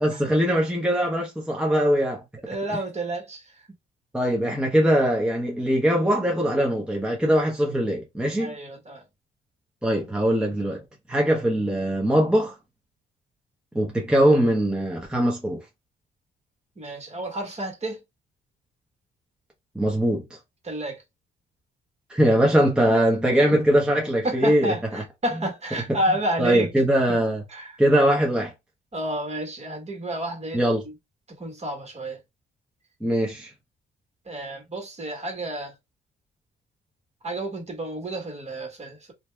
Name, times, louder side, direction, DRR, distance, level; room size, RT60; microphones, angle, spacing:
voice 1, 0.0-2.2 4.1-8.6 9.8-10.8 11.1-12.6 13.7-15.6 19.7-20.2 22.1-25.0 25.9-26.0 26.4-27.4 27.8-28.5 30.5-30.8 33.0-33.5, equal, 5° right, 0.9 m, -21 dB
voice 2, 2.5-3.5 8.4-9.0 16.8-18.0 20.6-21.0 23.5-23.6 24.2-26.7 27.1-27.2 27.5-27.8 28.9-30.9 31.4-32.2 34.2-35.7 37.2-39.1, right 1 dB, 35° right, 1.6 m, -30 dB
2.7 x 2.3 x 3.3 m
cardioid pair, 90°, 20 cm